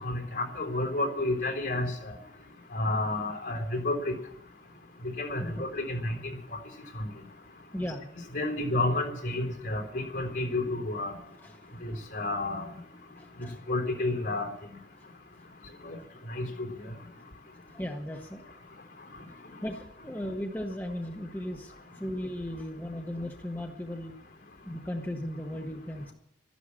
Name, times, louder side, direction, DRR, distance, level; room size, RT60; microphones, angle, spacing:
voice 1, 0.0-1.9 2.7-4.2 5.2-6.2 7.0-7.1 8.3-11.1 11.8-12.7 13.7-14.5 15.8-16.0 16.3-16.7, left 2 dB, 65° left, 3 dB, 3.6 m, -30 dB
voice 2, 5.4-5.7 7.7-8.1 11.4-12.0 13.2-13.6 17.7-18.5 19.6-24.1 24.7-26.1, left 1 dB, 10° left, 2 dB, 1.0 m, -37 dB
12.5 x 11.5 x 8.6 m, 0.79 s
head